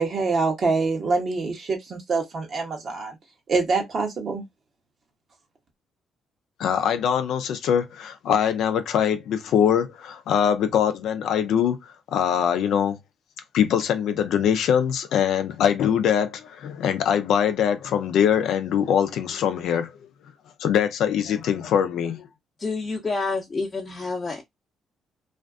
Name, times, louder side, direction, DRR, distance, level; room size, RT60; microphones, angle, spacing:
voice 1, 0.0-3.2 3.5-4.4, right 4 dB, 55° right, 0.9 m, -25 dB
voice 2, 6.6-11.8 12.1-13.0 13.5-19.9 20.6-22.3, left 8 dB, 75° left, 0.4 m, -22 dB
voice 3, 22.6-24.4, left 3 dB, 35° left, 0.7 m, -28 dB
2.5 x 2.2 x 2.3 m
supercardioid pair, 60°, 0 cm